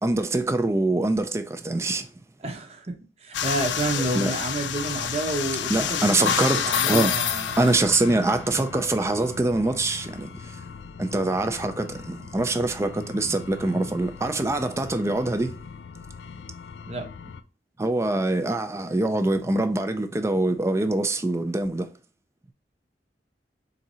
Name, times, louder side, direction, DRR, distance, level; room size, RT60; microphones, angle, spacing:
voice 1, 0.0-2.1 4.1-4.3 5.7-7.1 7.6-10.6 11.0-15.6 17.8-21.9, right 2 dB, 15° right, 0.4 m, -24 dB
voice 2, 2.4-2.9 3.2-7.6 8.1-8.3 16.9-17.0, right 2 dB, 35° right, 0.7 m, -30 dB
sound 1, 3.3-17.4, left 8 dB, 80° left, 0.4 m, -32 dB
3.8 x 2.7 x 4.2 m
head